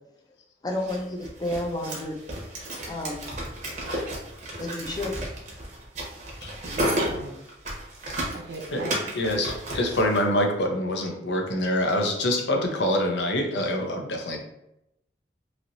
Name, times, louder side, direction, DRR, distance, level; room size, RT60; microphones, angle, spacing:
voice 1, 0.6-2.2 2.9-3.3 4.6-5.2, left 1 dB, 20° left, 3 dB, 0.4 m, -31 dB
sound 1, 0.8-10.2, right 1 dB, 45° right, 0.8 m, -33 dB
voice 2, 6.7-7.4 8.3-9.1, right 2 dB, 70° right, 3 dB, 0.5 m, -38 dB
voice 3, 9.1-14.4, left 1 dB, 80° left, 2 dB, 0.6 m, -25 dB
3.1 x 2.8 x 2.6 m, 0.83 s
head